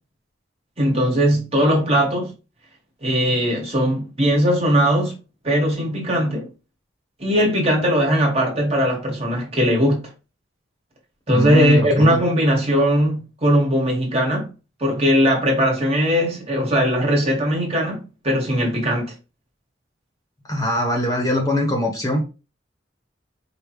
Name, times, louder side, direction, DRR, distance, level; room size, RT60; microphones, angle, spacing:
voice 1, 0.8-2.3 3.0-5.2 5.4-6.5 7.2-10.0 11.3-14.5 14.8-19.1, equal, 30° right, 1.6 m, -19 dB
voice 2, 11.3-12.2 20.5-22.2, left 1 dB, 20° left, 1.2 m, -22 dB
5.0 x 3.0 x 3.0 m
head